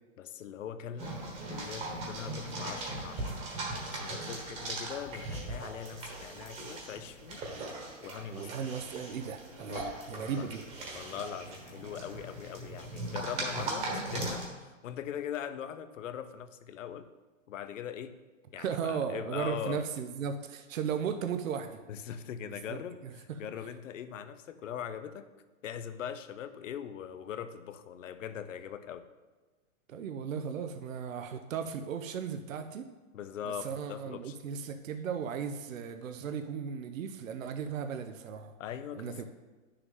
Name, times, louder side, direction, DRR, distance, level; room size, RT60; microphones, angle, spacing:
voice 1, 0.2-1.2 1.5-3.6 3.9-7.7 8.0-8.5 9.7-10.5 10.9-17.1 17.5-18.1 18.5-19.8 21.9-25.3 25.6-29.1 33.1-34.4 38.6-39.2, left 9 dB, 70° left, 11 dB, 0.8 m, -41 dB
sound 1, 1.0-14.5, right 2 dB, 15° right, 1.3 m, -39 dB
voice 2, 8.3-10.6 18.6-21.8 22.4-23.5 29.9-32.9 33.5-38.5 38.9-39.2, right 7 dB, 75° right, 8 dB, 0.8 m, -36 dB
9.1 x 6.7 x 3.7 m, 1.3 s
hypercardioid pair, 150°, 39 cm